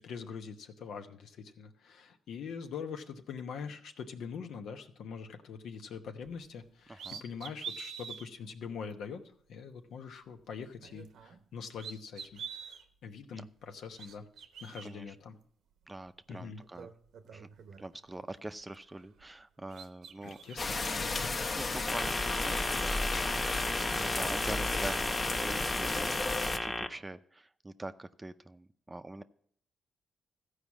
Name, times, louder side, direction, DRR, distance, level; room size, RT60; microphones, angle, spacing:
voice 1, 0.0-12.4 13.0-14.3 14.6-15.4 16.3-16.6 20.2-21.4, left 6 dB, 75° left, 6 dB, 1.0 m, -43 dB
sound 1, 6.2-6.4 6.9-8.3 8.9-9.0 10.7-11.5 11.7-12.8 13.7-14.9 16.1-16.2 16.6-18.2 18.6-19.4 19.7-20.6, right 7 dB, 75° right, 0.9 m, -46 dB
voice 2, 6.9-7.2 13.3-13.5 14.8-15.2 15.9-16.9 17.3-17.5 17.8-20.6 21.6-23.3 23.7-29.2, right 2 dB, 20° right, 11 dB, 0.6 m, -44 dB
sound 2, 20.6-26.6, left 3 dB, 40° left, 1.0 m, -33 dB
sound 3, 21.9-26.9, left 1 dB, 15° left, 1.2 m, -35 dB
14.5 x 4.9 x 7.2 m, 0.64 s
cardioid pair, 70°, 0 cm